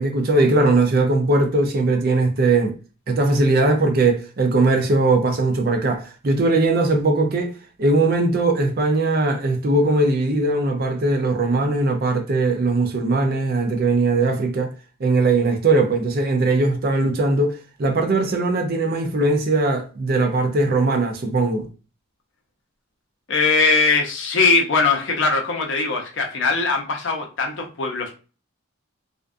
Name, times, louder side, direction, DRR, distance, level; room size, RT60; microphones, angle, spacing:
voice 1, 0.0-2.8 3.1-7.5 7.8-14.7 15.0-21.7, right 2 dB, 45° right, 0.4 m, -20 dB
voice 2, 23.3-28.2, left 4 dB, 60° left, 0.6 m, -20 dB
2.5 x 2.2 x 2.4 m
head